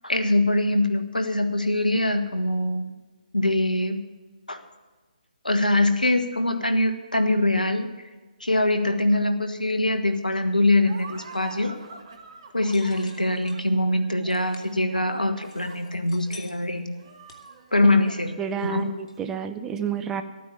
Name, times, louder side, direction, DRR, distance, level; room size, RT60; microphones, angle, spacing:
voice 1, 0.0-2.8 3.3-4.0 4.5-4.6 5.4-7.9 8.4-11.8 12.5-16.9 17.7-18.3 18.6-18.9, left 1 dB, 90° left, 8 dB, 1.4 m, -23 dB
Laughter, 10.8-19.1, right 4 dB, 40° right, 1.7 m, -45 dB
sound 1, 12.6-13.6 14.3-14.7 15.4-16.8 17.3-17.9 18.2-18.3 18.8-18.9 19.1-19.2, left 4 dB, 50° left, 2.2 m, -47 dB
voice 2, 18.4-20.2, right 7 dB, 10° right, 9 dB, 0.7 m, -29 dB
13.0 x 9.3 x 7.2 m, 1.3 s
figure-of-eight pair, 140°, 4 cm